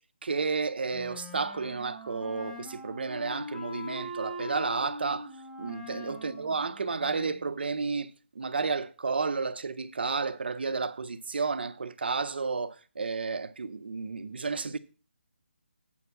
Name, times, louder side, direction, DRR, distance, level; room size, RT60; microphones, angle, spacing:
voice 1, 0.0-5.3 5.6-8.1 8.3-14.8, right 4 dB, 55° right, 0.7 m, -32 dB
Wind instrument woodwind instrument, 0.9-7.5, left 2 dB, 5° left, 0.5 m, -42 dB
8.3 x 4.6 x 6.9 m
hypercardioid pair, 170°, 7 cm